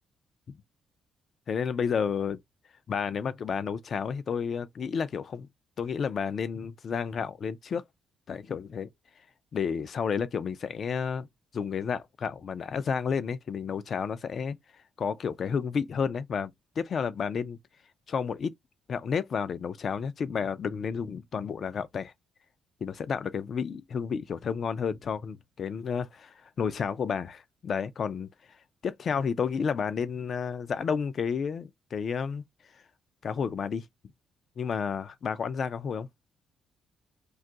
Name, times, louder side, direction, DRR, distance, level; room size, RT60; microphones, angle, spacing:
voice 1, 1.5-2.4 2.9-5.5 5.8-7.8 8.3-8.9 9.5-11.3 11.5-14.6 15.0-17.6 18.1-18.5 18.9-22.1 22.8-28.3 28.8-32.4 33.2-33.8 34.6-36.1, left 6 dB, 50° left, 0.4 m, -31 dB
2.6 x 2.3 x 3.8 m
cardioid pair, 90°, 0 cm